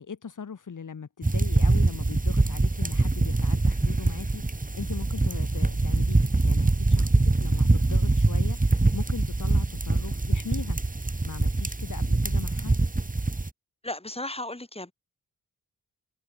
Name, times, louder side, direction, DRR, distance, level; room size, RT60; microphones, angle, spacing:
voice 1, 0.0-10.8 11.2-12.8, left 6 dB, 60° left, 5.3 m, -40 dB
sound 1, 1.2-13.5, right 2 dB, 25° right, 3.9 m, -24 dB
voice 2, 13.8-14.9, left 2 dB, 15° left, 4.4 m, -35 dB
cardioid pair, 55°, 34 cm